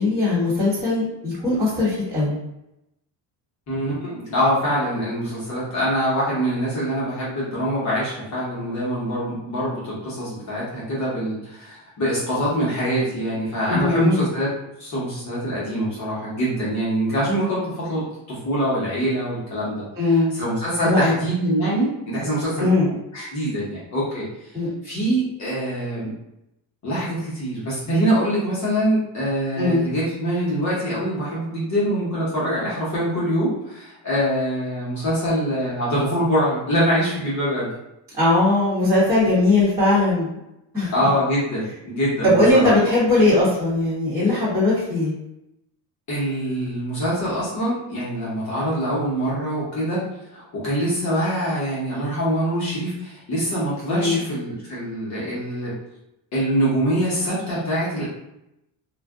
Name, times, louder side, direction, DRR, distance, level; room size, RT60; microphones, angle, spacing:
voice 1, 0.0-2.4 13.7-14.2 20.0-20.3 20.8-21.2 22.6-22.9 24.5-24.7 29.6-29.8 38.2-40.4 40.7-40.9 42.2-45.1 53.9-54.2, left 2 dB, 5° right, -12 dB, 1.1 m, -19 dB
voice 2, 3.7-14.5 14.8-24.3 24.8-26.1 26.8-37.7 40.9-42.7 46.1-50.0 50.3-55.7 56.3-58.0, equal, 40° left, -7 dB, 0.9 m, -24 dB
2.4 x 2.2 x 3.5 m, 0.86 s
cardioid pair, 170°, 43 cm